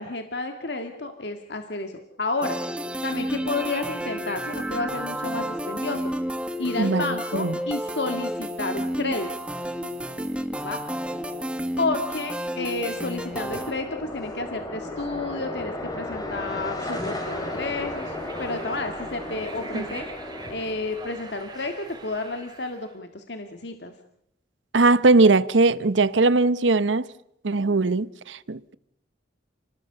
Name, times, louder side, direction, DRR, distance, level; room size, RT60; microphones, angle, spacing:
voice 1, 0.0-1.9 2.2-2.6 3.0-6.1 6.6-9.3 10.6-10.8 11.8-20.1 20.5-23.9, left 3 dB, 65° left, 1.9 m, -31 dB
sound 1, 2.4-13.7, equal, 5° right, 1.5 m, -31 dB
voice 2, 6.8-7.6 19.7-19.8 24.7-27.1 27.4-28.7, right 3 dB, 90° right, 0.9 m, -20 dB
sound 2, 12.5-21.5, left 1 dB, 20° left, 3.6 m, -35 dB
sound 3, 16.8-22.9, right 3 dB, 25° right, 3.3 m, -44 dB
29.5 x 20.0 x 6.8 m
head